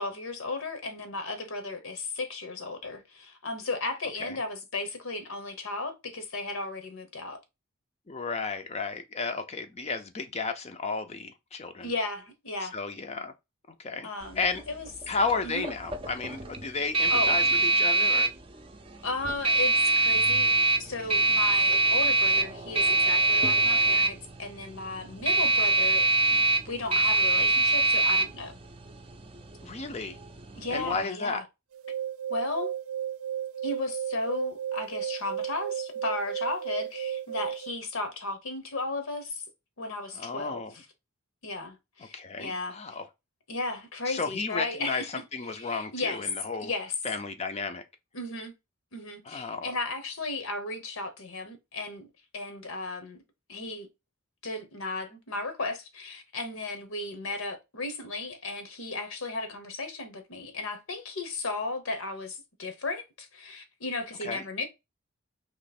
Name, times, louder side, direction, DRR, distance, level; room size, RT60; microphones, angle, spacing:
voice 1, 0.0-7.4 11.8-12.8 14.0-14.4 14.7-14.9 15.4-15.7 17.1-17.4 19.0-28.5 30.5-31.4 32.3-32.7 33.6-39.4 39.8-40.8 41.4-43.0 43.5-45.1 45.5-46.3 46.6-46.9 48.1-48.5 48.9-52.1 52.3-53.2 53.5-53.9 54.4-64.6, left 3 dB, 80° left, 1.1 m, -35 dB
voice 2, 8.1-11.9 12.6-13.3 13.8-14.1 14.4-14.6 15.1-18.3 29.6-30.2 30.7-31.4 40.1-40.7 42.1-43.0 44.1-46.7 47.0-47.8 49.3-49.7 64.2-64.4, left 4 dB, 30° left, 0.5 m, -33 dB
sound 1, 14.2-31.0, right 3 dB, 25° right, 0.5 m, -25 dB
sound 2, 31.7-37.7, right 10 dB, 80° right, 0.4 m, -34 dB
3.1 x 3.0 x 4.2 m
head